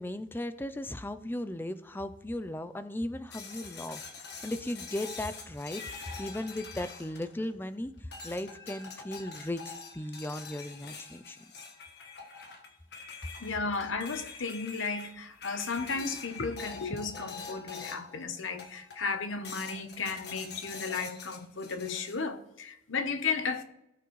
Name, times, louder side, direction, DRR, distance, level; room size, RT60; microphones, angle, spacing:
voice 1, 0.0-11.4, left 1 dB, 10° left, 0.4 m, -37 dB
sound 1, 3.3-7.7 8.1-18.2 18.6-19.1 19.4-22.2, left 5 dB, 55° left, 1.5 m, -45 dB
voice 2, 13.4-23.6, left 4 dB, 90° left, 0.9 m, -34 dB
17.5 x 5.9 x 3.1 m
head